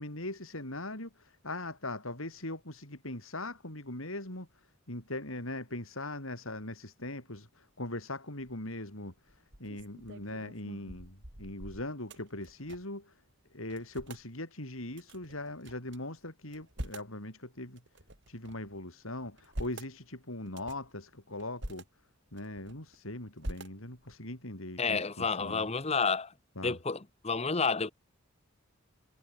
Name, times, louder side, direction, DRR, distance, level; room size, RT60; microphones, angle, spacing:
voice 1, 0.0-13.2 13.5-17.8 18.3-21.8 22.3-25.7 26.6-26.8, left 1 dB, 75° left, 7.0 m, -40 dB
sound 1, 8.4-8.8 9.3-13.0 13.3-13.4 13.7-14.2 14.9-16.0 16.4-17.2 17.8-18.7 19.2-19.9 20.5-20.9 21.4-21.8 22.3-23.0 23.4-24.1, right 1 dB, 55° right, 5.3 m, -44 dB
voice 2, 24.8-26.3 26.6-27.9, left 4 dB, 30° left, 1.1 m, -30 dB
head